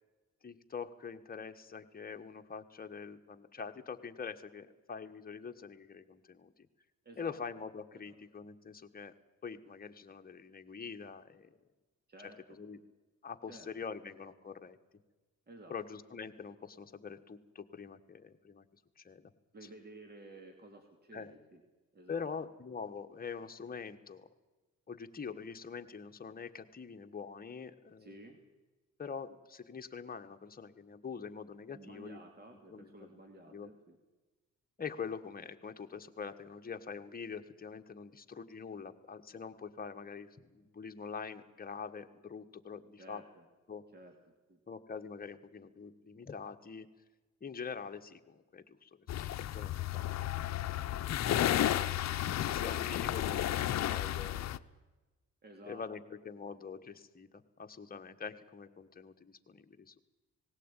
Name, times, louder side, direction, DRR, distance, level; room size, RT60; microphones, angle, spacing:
voice 1, 0.4-6.5 7.2-9.1 9.4-11.5 12.5-12.8 13.2-14.8 15.7-18.7 19.0-19.3 21.1-21.3 22.1-24.3 24.9-28.2 29.0-32.2 32.7-33.7 34.8-43.2 43.7-43.8 44.7-46.9 47.4-48.9 49.5-50.3 51.5-54.6 55.6-60.0, left 5 dB, 30° left, 5 dB, 1.5 m, -44 dB
voice 2, 7.0-7.4 7.9-8.2 12.1-12.6 13.5-13.7 15.5-15.8 19.5-21.6 21.9-22.3 28.0-28.4 31.7-34.0 43.0-43.5 43.9-44.2 44.5-44.6 51.4-52.0 55.4-55.9, right 2 dB, 30° right, 4 dB, 2.7 m, -53 dB
sound 1, 49.1-54.6, left 12 dB, 60° left, 0.8 m, -32 dB
19.0 x 16.5 x 9.1 m, 1.2 s
cardioid pair, 90°, 30 cm